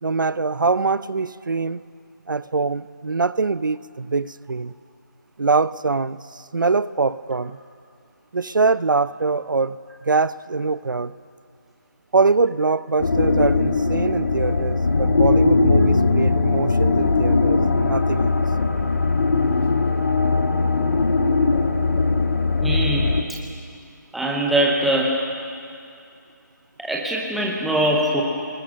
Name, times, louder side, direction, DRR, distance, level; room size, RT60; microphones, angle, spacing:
voice 1, 0.0-1.8 2.3-4.7 5.4-7.6 8.3-11.2 12.1-18.4, right 4 dB, 80° right, 17 dB, 0.7 m, -23 dB
sound 1, 13.0-23.2, left 3 dB, 50° left, 1.8 m, -19 dB
voice 2, 22.6-23.1 24.1-25.2 26.8-28.2, right 1 dB, ahead, -2 dB, 0.7 m, -22 dB
29.0 x 20.0 x 6.4 m, 2.4 s
figure-of-eight pair, 175°, 10 cm